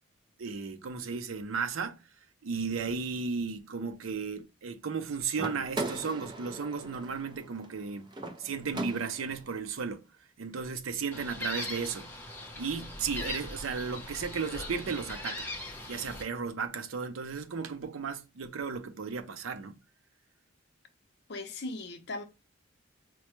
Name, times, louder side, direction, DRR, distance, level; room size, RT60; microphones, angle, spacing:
voice 1, 0.4-2.0 2.4-8.1 8.4-10.0 10.4-12.1 12.6-15.5 15.9-19.7, right 5 dB, 90° right, 0.5 m, -34 dB
sound 1, 5.3-9.4, right 2 dB, 20° right, 0.4 m, -39 dB
Gull seagull, 11.1-16.2, left 1 dB, 10° left, 0.8 m, -40 dB
voice 2, 21.3-22.2, left 2 dB, 55° left, 0.6 m, -38 dB
4.5 x 2.1 x 2.9 m
head